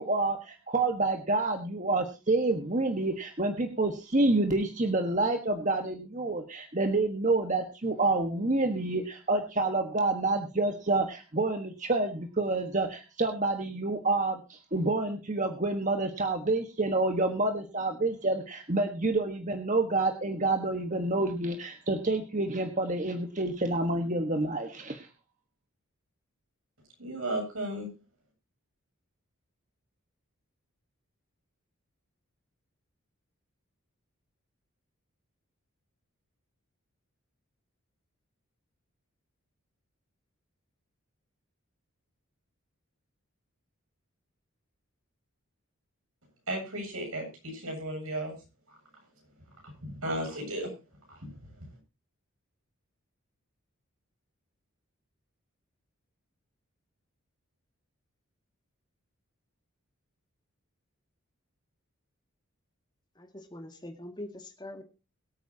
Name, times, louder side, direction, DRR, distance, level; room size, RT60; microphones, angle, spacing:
voice 1, 0.0-25.1, right 2 dB, 35° right, 5 dB, 1.4 m, -28 dB
voice 2, 27.0-27.9 46.5-48.3 49.8-50.7 51.1-51.3, right 1 dB, 80° right, 1 dB, 7.7 m, -34 dB
voice 3, 63.2-64.8, left 1 dB, 20° left, 4 dB, 2.1 m, -43 dB
22.5 x 9.1 x 2.8 m, 0.31 s
head